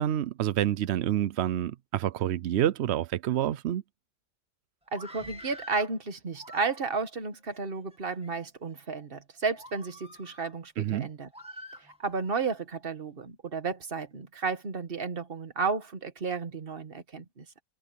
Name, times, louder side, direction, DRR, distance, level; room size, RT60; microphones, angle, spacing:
voice 1, 0.0-3.8 10.8-11.1, right 11 dB, 80° right, 0.6 m, -28 dB
Screaming, 4.9-6.0 6.3-7.1 7.8-8.3 8.9-9.0 9.6-10.5 11.3-12.4, equal, 5° right, 2.0 m, -47 dB
voice 2, 4.9-11.3 11.8-17.4, right 4 dB, 35° right, 1.5 m, -33 dB
omnidirectional pair, 1.8 m